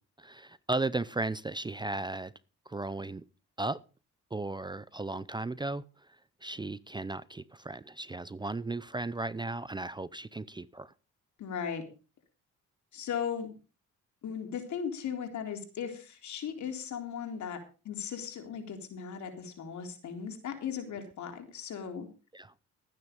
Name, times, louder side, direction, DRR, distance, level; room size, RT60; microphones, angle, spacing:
voice 1, 0.2-2.3 2.7-3.2 3.6-3.8 4.3-5.8 6.4-10.9 22.3-22.5, right 2 dB, 15° right, 0.6 m, -35 dB
voice 2, 11.4-11.8 12.9-13.5 14.2-17.6 17.8-22.1, left 7 dB, 70° left, 3.7 m, -37 dB
13.5 x 9.6 x 5.3 m
cardioid pair, 90°, 30 cm